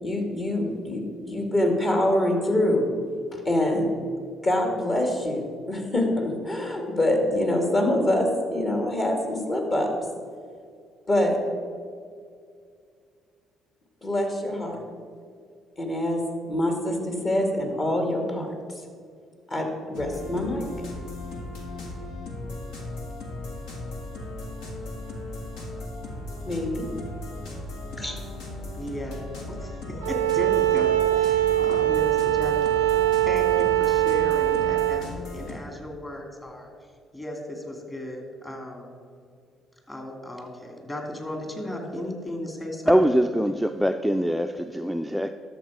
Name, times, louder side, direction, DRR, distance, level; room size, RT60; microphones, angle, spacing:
voice 1, 0.0-2.9 3.3-3.9 4.4-9.9 11.1-11.4 14.0-14.8 15.8-16.2 16.5-18.5 19.5-20.7 26.5-26.8 28.0-28.2, left 1 dB, 40° left, 2 dB, 2.4 m, -25 dB
sound 1, 19.9-35.6, left 2 dB, 75° left, 1.6 m, -37 dB
voice 2, 28.7-29.2 29.5-33.0 33.2-36.7 37.1-38.9 39.9-43.2, equal, 20° left, 2 dB, 2.7 m, -35 dB
Bowed string instrument, 30.0-35.1, right 15 dB, 85° right, 0.4 m, -22 dB
voice 3, 42.9-45.3, equal, ahead, 8 dB, 0.4 m, -23 dB
12.0 x 7.1 x 4.9 m, 2.2 s
hypercardioid pair, 55°, 0 cm